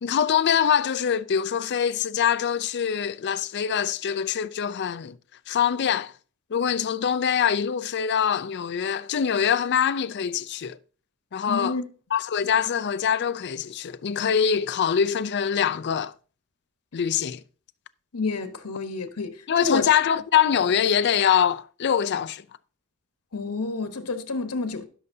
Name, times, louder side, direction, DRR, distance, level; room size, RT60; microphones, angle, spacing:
voice 1, 0.0-5.2 5.5-6.1 6.5-10.8 11.3-11.8 12.1-16.1 16.9-17.4 19.5-22.4, left 8 dB, 50° left, 0.4 m, -24 dB
voice 2, 11.5-11.8 18.1-19.9 23.3-24.9, left 3 dB, 90° left, 1.1 m, -29 dB
16.0 x 6.6 x 2.7 m
head